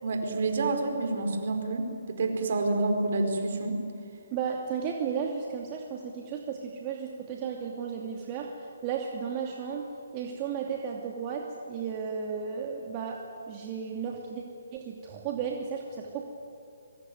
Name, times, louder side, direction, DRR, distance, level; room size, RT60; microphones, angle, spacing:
voice 1, 0.0-3.8, right 2 dB, 55° right, 5 dB, 4.9 m, -28 dB
voice 2, 4.3-9.9 10.1-14.4 14.7-16.2, right 6 dB, 30° right, 0 dB, 2.7 m, -34 dB
23.0 x 23.0 x 9.6 m, 2.7 s
figure-of-eight pair, 140°, 0 cm